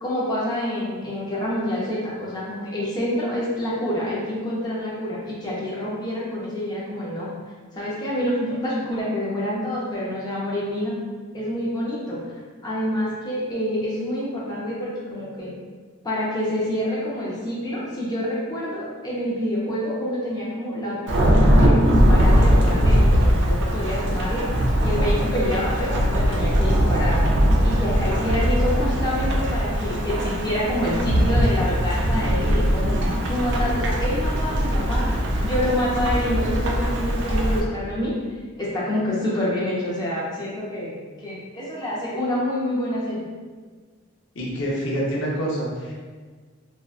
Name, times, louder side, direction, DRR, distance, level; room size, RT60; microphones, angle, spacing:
voice 1, 0.0-7.3 7.7-10.9 11.3-12.2 12.6-15.5 16.0-24.5 24.8-27.3 27.6-33.0 33.3-35.1 35.4-38.1 38.6-43.2, left 1 dB, 20° left, -7 dB, 0.5 m, -27 dB
Thunderstorm / Rain, 21.1-37.6, equal, 60° right, 0.3 m, -20 dB
voice 2, 44.3-45.9, equal, 65° left, -4 dB, 0.6 m, -26 dB
2.6 x 2.2 x 2.3 m, 1.5 s
head